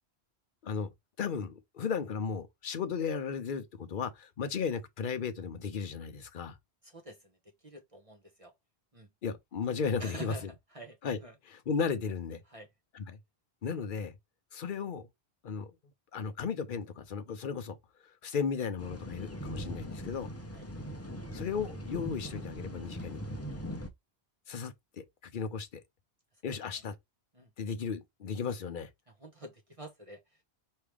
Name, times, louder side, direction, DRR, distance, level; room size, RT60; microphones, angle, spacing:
voice 1, 1.2-6.6 9.2-10.5 11.0-11.2 11.5-12.4 12.9-13.2 13.6-14.2 14.5-15.1 15.4-15.7 16.1-17.8 18.0-20.3 21.3-23.2 24.5-25.8 26.4-27.0 27.6-28.9, left 6 dB, 55° left, 0.8 m, -35 dB
voice 2, 6.8-7.4 7.6-8.5 8.9-9.1 10.0-10.5 10.7-11.0 11.2-11.3 12.5-12.7 20.5-20.6 23.5-23.6 27.3-27.5 29.2-30.4, right 2 dB, 35° right, 1.0 m, -47 dB
sound 1, 18.8-23.9, equal, 15° left, 0.6 m, -41 dB
4.7 x 3.2 x 3.3 m
omnidirectional pair, 1.1 m